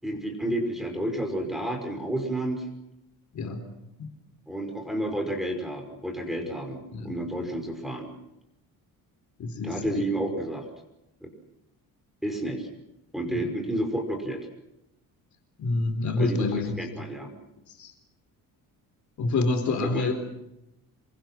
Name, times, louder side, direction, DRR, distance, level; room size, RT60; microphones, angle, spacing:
voice 1, 0.0-2.7 4.5-8.1 9.6-10.6 11.2-11.3 12.2-12.7 13.1-14.5 16.2-16.5 16.8-17.3 19.8-20.1, right 1 dB, ahead, 2 dB, 5.6 m, -30 dB
voice 2, 3.3-3.7 4.0-4.1 6.9-7.2 9.4-10.0 13.3-13.5 15.6-16.8 17.8-17.9 19.2-20.1, left 3 dB, 55° left, 6 dB, 4.1 m, -27 dB
27.5 x 24.0 x 6.2 m, 0.88 s
cardioid pair, 125°, 35 cm